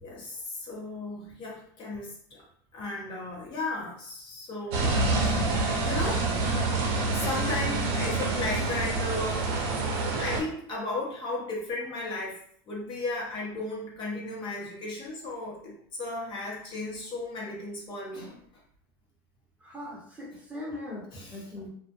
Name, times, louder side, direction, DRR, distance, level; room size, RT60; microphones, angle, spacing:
voice 1, 0.0-2.4 2.7-6.3 6.6-9.7 10.2-12.4 12.7-18.3 21.1-21.7, left 2 dB, 40° left, -3 dB, 0.8 m, -35 dB
sound 1, 4.7-10.4, right 3 dB, 55° right, 0.7 m, -27 dB
voice 2, 19.6-21.7, left 1 dB, 10° right, -5 dB, 0.8 m, -40 dB
2.2 x 2.1 x 2.8 m, 0.62 s
supercardioid pair, 110°, 13 cm